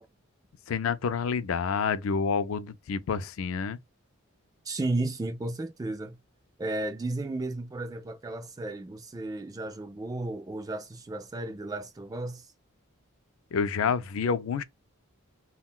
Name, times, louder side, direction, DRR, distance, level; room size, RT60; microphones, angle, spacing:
voice 1, 0.7-3.8 13.5-14.6, left 6 dB, 70° left, 0.4 m, -28 dB
voice 2, 4.7-6.2 6.6-12.4 13.8-13.9, right 2 dB, 15° right, 0.3 m, -34 dB
3.6 x 2.2 x 2.3 m
head